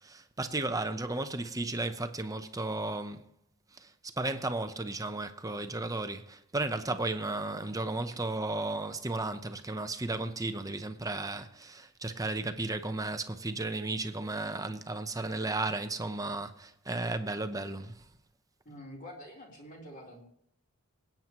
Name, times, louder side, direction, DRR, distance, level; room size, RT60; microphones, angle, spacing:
voice 1, 0.0-3.3 3.7-18.0, right 2 dB, 15° right, 0.8 m, -34 dB
voice 2, 18.7-20.2, equal, 40° left, 3.5 m, -47 dB
25.0 x 9.0 x 3.0 m
head